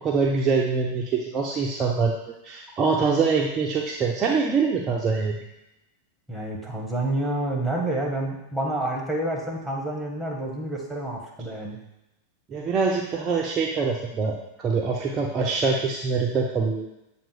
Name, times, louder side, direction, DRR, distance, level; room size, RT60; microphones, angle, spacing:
voice 1, 0.0-2.1 2.4-5.4 12.5-16.9, right 4 dB, 25° right, -1 dB, 0.6 m, -24 dB
voice 2, 6.3-11.8, right 1 dB, ahead, -2 dB, 1.5 m, -28 dB
7.3 x 2.6 x 5.1 m, 0.93 s
figure-of-eight pair, 90°, 0 cm